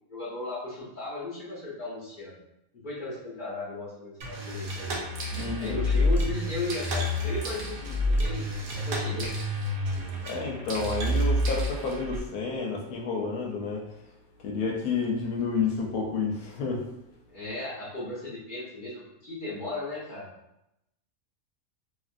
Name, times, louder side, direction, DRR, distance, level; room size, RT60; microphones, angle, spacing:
voice 1, 0.1-2.4 2.7-5.0 5.6-9.4 17.3-20.3, left 2 dB, 40° left, -9 dB, 0.9 m, -36 dB
sound 1, 4.2-12.2, left 1 dB, 60° right, 0.6 m, -29 dB
voice 2, 5.3-5.8 10.3-13.8 14.4-16.8, left 4 dB, 85° left, 0 dB, 1.1 m, -30 dB
3.0 x 2.5 x 2.5 m, 0.86 s
omnidirectional pair, 1.5 m